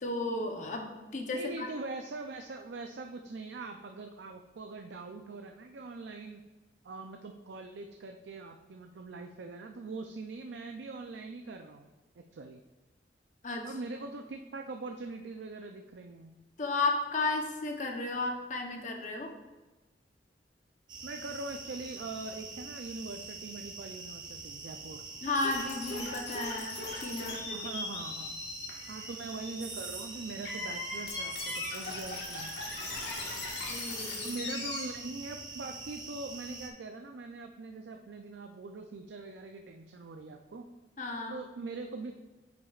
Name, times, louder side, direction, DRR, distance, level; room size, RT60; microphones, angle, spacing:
voice 1, 0.0-1.7 13.4-13.7 16.6-19.3 25.2-27.6 33.7-34.3 41.0-41.4, left 3 dB, 45° left, 3 dB, 0.8 m, -33 dB
voice 2, 1.3-6.4 6.8-11.9 12.2-12.6 13.6-16.3 21.0-25.0 27.5-28.4 28.9-32.5 34.2-40.7 41.3-42.1, right 3 dB, 85° right, 4 dB, 0.5 m, -42 dB
sound 1, 20.9-36.7, right 4 dB, 25° right, 0.7 m, -44 dB
sound 2, 25.3-34.8, left 3 dB, 65° left, 1.5 m, -39 dB
9.1 x 5.9 x 2.4 m, 1.2 s
head